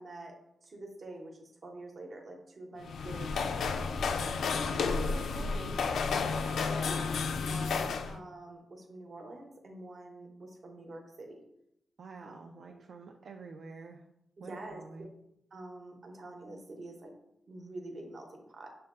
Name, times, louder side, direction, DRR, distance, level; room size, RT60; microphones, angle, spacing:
voice 1, 0.0-3.9 5.3-5.6 6.0-11.4 12.2-12.3 12.7-12.8 14.4-14.8 15.5-17.1 17.5-18.8, right 2 dB, 45° right, 2 dB, 0.8 m, -46 dB
sound 1, 2.8-8.1, left 5 dB, 80° left, 0.3 m, -31 dB
voice 2, 4.6-5.8 12.0-14.0 14.4-15.1, right 4 dB, 60° right, 2 dB, 0.3 m, -47 dB
6.5 x 2.2 x 3.6 m, 0.81 s
wide cardioid pair, 140°, 0 cm